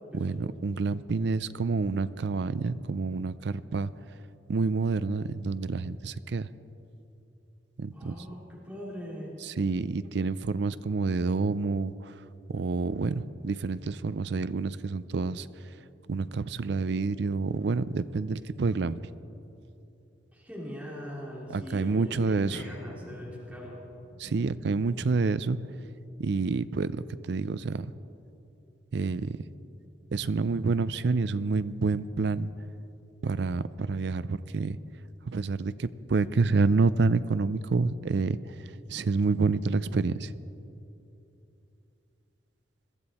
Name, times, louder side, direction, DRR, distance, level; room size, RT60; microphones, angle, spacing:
voice 1, 0.1-3.9 4.5-6.5 7.8-8.2 9.4-11.9 12.5-15.5 16.1-19.0 21.5-22.6 24.2-25.6 26.2-27.9 28.9-29.4 30.1-32.5 33.2-34.8 35.3-38.4 38.9-40.3, right 4 dB, 65° right, 15 dB, 0.4 m, -28 dB
voice 2, 7.9-9.3 20.3-23.8, equal, 5° right, -6 dB, 2.9 m, -41 dB
sound 1, 22.2-26.8 27.1-27.3 27.8-27.9, left 1 dB, 65° left, 1.9 m, -49 dB
22.0 x 13.5 x 4.2 m, 2.8 s
head